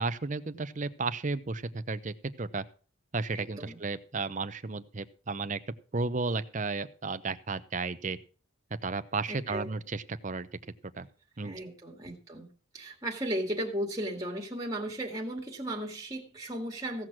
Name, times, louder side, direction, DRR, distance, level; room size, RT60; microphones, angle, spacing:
voice 1, 0.0-2.6 3.1-5.6 5.9-8.2 8.8-10.5 10.9-11.1 11.4-11.6, right 3 dB, 40° right, 11 dB, 0.7 m, -33 dB
voice 2, 3.3-3.8 9.3-9.7 11.4-12.5 12.7-17.1, right 1 dB, 15° right, 1 dB, 2.1 m, -35 dB
16.0 x 6.1 x 6.1 m, 0.38 s
head